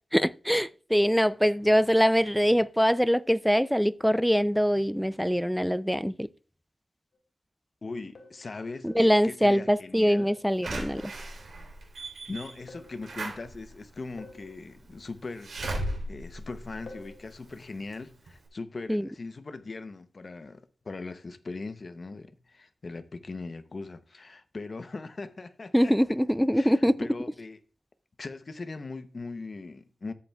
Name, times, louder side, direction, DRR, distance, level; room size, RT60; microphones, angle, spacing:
voice 1, 0.1-6.3 8.8-11.0 18.9-19.1 25.7-27.0, equal, ahead, 0.3 m, -23 dB
sound 1, 7.1-7.2 8.2-8.5 8.9-9.2 10.2-10.5 11.0-11.3 12.7-13.0 14.2-14.5 15.6-16.0 16.9-17.2, left 2 dB, 75° left, 1.7 m, -47 dB
voice 2, 7.8-10.3 12.3-25.9 26.5-27.6 28.2-30.1, left 3 dB, 45° left, 0.7 m, -40 dB
Slam / Alarm, 10.6-17.5 17.9-18.0 18.3-18.4, right 1 dB, 90° right, 3.1 m, -37 dB
13.5 x 7.9 x 2.3 m
wide cardioid pair, 110°, 0 cm